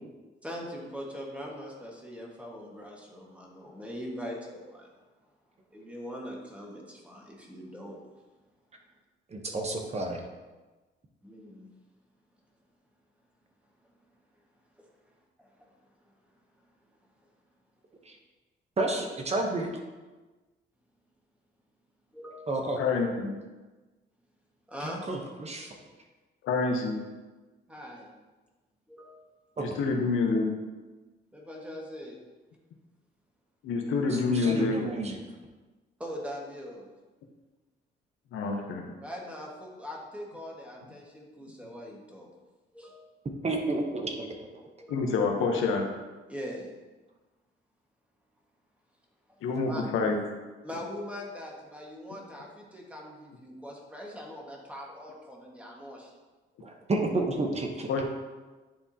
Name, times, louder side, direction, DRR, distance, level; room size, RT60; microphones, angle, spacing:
voice 1, 0.4-4.9 5.7-8.0 11.2-11.7 15.4-15.5 22.1-22.5 24.7-25.0 27.7-28.1 28.9-29.2 31.3-32.2 36.0-36.9 39.0-42.3 42.7-43.0 44.8-45.0 46.3-46.7 49.6-49.8 50.6-56.1, equal, 5° right, -2 dB, 1.6 m, -41 dB
voice 2, 9.3-10.2 18.1-18.2 18.8-19.8 22.5-22.8 24.8-25.8 29.6-29.7 34.1-35.2 43.4-44.3 56.6-57.9, right 2 dB, 35° right, 2 dB, 1.0 m, -31 dB
voice 3, 22.8-23.3 26.4-27.0 29.6-30.5 33.6-34.8 38.3-38.9 44.9-45.8 49.4-50.2 57.9-58.0, left 4 dB, 85° left, 2 dB, 1.0 m, -27 dB
10.5 x 3.5 x 2.8 m, 1.2 s
cardioid pair, 90°, 20 cm